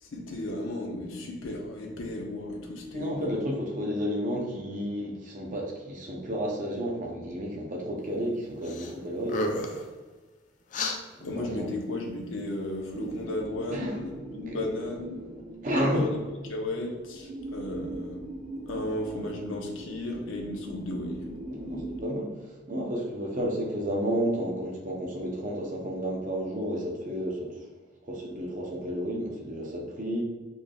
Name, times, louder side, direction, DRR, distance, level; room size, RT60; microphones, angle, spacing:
voice 1, 0.0-3.4 11.2-15.2 15.8-16.1 16.5-18.2 18.7-21.2, left 1 dB, 85° left, 1 dB, 0.7 m, -34 dB
voice 2, 2.9-9.7 11.1-11.7 13.7-14.0 14.5-14.7 15.6-16.1 21.5-27.7 28.0-30.2, equal, 40° right, -1 dB, 0.7 m, -31 dB
sound 1, 8.6-8.9 9.2-9.8 10.7-11.0, left 2 dB, 40° left, 0.4 m, -31 dB
sound 2, 12.9-22.0, right 2 dB, 80° right, 1.1 m, -40 dB
4.2 x 3.3 x 2.3 m, 1.3 s
head